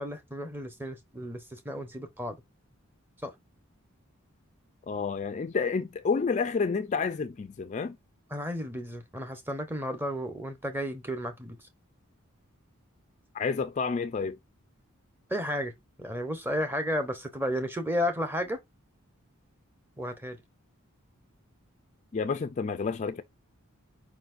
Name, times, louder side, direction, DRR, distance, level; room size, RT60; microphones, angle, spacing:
voice 1, 0.0-2.4 3.2-3.3 8.3-11.7 15.3-15.7 16.0-18.6 20.0-20.4, equal, 10° right, 0.8 m, -33 dB
voice 2, 4.9-8.0 13.3-14.4 22.1-23.2, left 5 dB, 35° left, 0.3 m, -29 dB
4.9 x 4.0 x 2.5 m
head